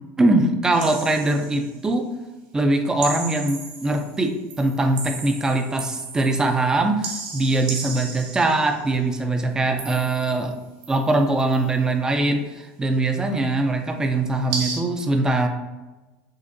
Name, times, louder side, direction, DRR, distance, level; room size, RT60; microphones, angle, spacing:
voice 1, 0.2-2.1 2.5-10.5 10.9-15.5, right 2 dB, 10° right, 5 dB, 0.4 m, -22 dB
sound 1, 0.7-1.7 3.0-4.2 4.5-6.6 7.0-8.8 9.8-10.5 10.8-11.7 14.5-14.8, right 4 dB, 50° right, 1.1 m, -34 dB
6.4 x 2.5 x 2.6 m, 1.1 s
cardioid pair, 145°, 5 cm